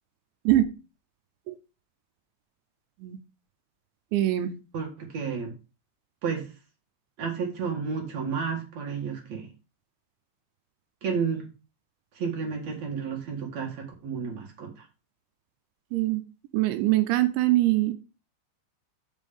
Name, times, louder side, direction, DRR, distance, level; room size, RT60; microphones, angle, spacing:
voice 1, 4.1-4.5 15.9-16.2 16.5-17.9, right 15 dB, 80° right, 2.8 m, -23 dB
voice 2, 4.7-5.5 6.2-6.5 7.2-9.5 11.0-11.5 12.1-14.9, right 6 dB, 50° right, 2.2 m, -31 dB
8.4 x 5.3 x 5.4 m
omnidirectional pair, 5.6 m